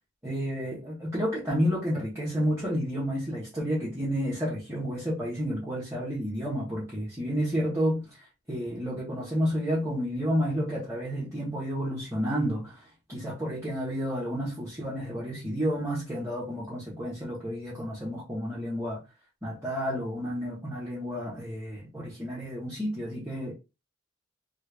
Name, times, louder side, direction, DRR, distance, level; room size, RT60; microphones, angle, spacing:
voice 1, 0.2-8.2 8.5-19.0 19.4-23.5, equal, 15° right, 1.0 m, -31 dB
3.1 x 2.4 x 3.3 m
head